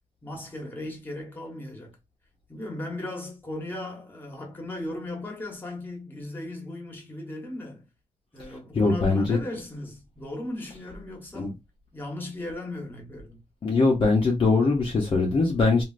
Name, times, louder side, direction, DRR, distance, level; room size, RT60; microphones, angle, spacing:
voice 1, 0.2-2.0 2.5-7.8 8.3-11.5 11.9-13.4, left 1 dB, 15° left, 1.1 m, -37 dB
voice 2, 8.5-9.4 11.3-11.5 13.6-15.8, left 3 dB, 40° left, 0.6 m, -22 dB
3.2 x 2.5 x 2.4 m
wide cardioid pair, 140°, 13 cm